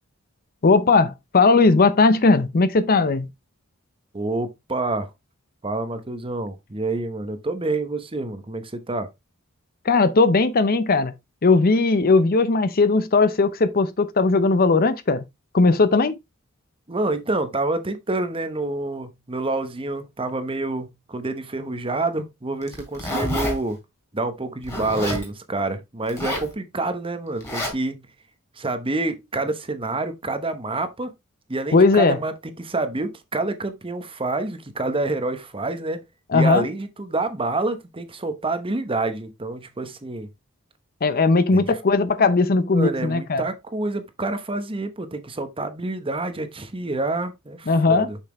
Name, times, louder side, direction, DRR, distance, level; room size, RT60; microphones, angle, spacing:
voice 1, 0.6-3.3 9.9-11.1 11.4-15.3 15.5-16.2 31.7-32.2 36.3-36.6 41.0-43.4 47.7-48.1, left 3 dB, 45° left, 0.7 m, -18 dB
voice 2, 4.1-5.1 5.6-9.1 16.9-23.8 24.1-28.0 28.6-31.1 31.5-36.0 36.3-40.3 41.5-41.8 42.7-48.2, right 2 dB, 25° right, 0.9 m, -27 dB
Zipper (clothing), 22.6-23.5 24.6-25.2 26.1-26.5 27.4-27.7, equal, 15° left, 3.3 m, -28 dB
7.0 x 5.8 x 3.1 m
head